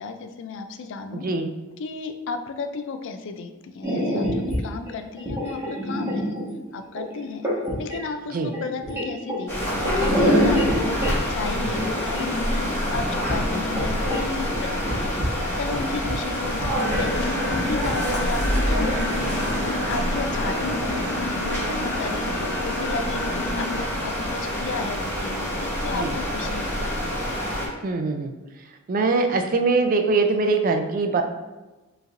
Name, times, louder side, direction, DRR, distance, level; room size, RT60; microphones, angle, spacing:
voice 1, 0.0-1.2 1.8-6.3 6.7-7.5 7.8-15.2 15.6-26.9, left 4 dB, 60° left, 8 dB, 0.4 m, -33 dB
voice 2, 1.1-1.5 8.3-8.5 25.9-26.1 27.8-28.3 28.9-31.2, right 3 dB, 40° right, 6 dB, 0.4 m, -22 dB
sound 1, 3.8-4.6 4.9-6.6 6.8-8.0 8.5-9.6 10.0-11.1 11.4-11.5 11.7-12.2 12.9-13.0 13.2-14.2 14.5-14.6 14.8-15.3 15.7-16.3 16.6-16.7 16.9-17.0 17.3-17.9, equal, 10° right, 1.3 m, -26 dB
sound 2, 9.5-27.7, equal, 10° left, 1.3 m, -26 dB
sound 3, 16.8-23.8, left 1 dB, 80° left, 1.0 m, -31 dB
4.9 x 3.1 x 2.5 m, 1.1 s
head